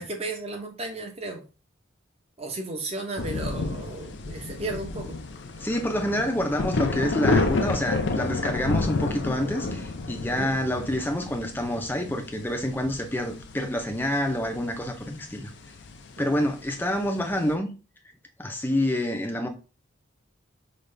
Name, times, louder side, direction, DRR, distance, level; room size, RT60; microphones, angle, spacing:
voice 1, 0.0-1.4 2.4-5.2 10.4-10.5 16.2-16.5, right 2 dB, 30° right, 0.8 m, -34 dB
sound 1, 3.2-17.5, left 3 dB, 60° left, 0.5 m, -30 dB
voice 2, 5.6-15.5 16.2-17.7 18.4-19.5, left 1 dB, 10° left, 0.5 m, -27 dB
5.2 x 2.4 x 3.2 m
head